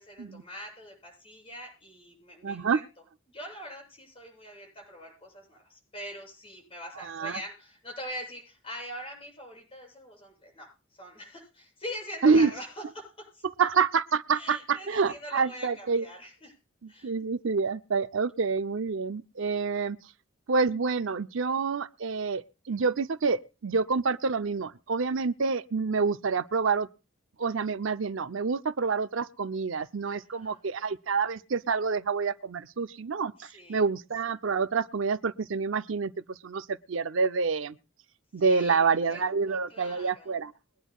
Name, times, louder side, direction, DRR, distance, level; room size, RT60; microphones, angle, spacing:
voice 1, 0.0-2.8 3.3-10.7 11.0-13.4 14.3-16.5 16.9-17.1 19.4-19.6 30.1-30.6 33.4-33.8 38.4-40.4, equal, 30° left, 7.6 m, -43 dB
voice 2, 2.4-2.8 7.1-7.4 12.2-12.5 13.6-16.0 17.0-20.0 20.5-26.9 27.4-37.8 38.3-40.5, right 5 dB, 75° right, 0.6 m, -27 dB
22.5 x 10.0 x 2.3 m
head